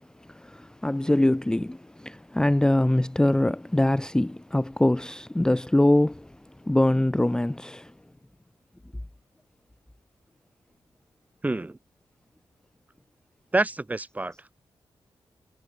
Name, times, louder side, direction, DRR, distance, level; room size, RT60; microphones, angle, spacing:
voice 1, 0.3-6.3 6.7-7.9, left 1 dB, 10° left, 0.6 m, -23 dB
voice 2, 11.4-11.8 13.5-14.6, right 2 dB, 15° right, 1.2 m, -28 dB
wide cardioid pair, 130°, 10 cm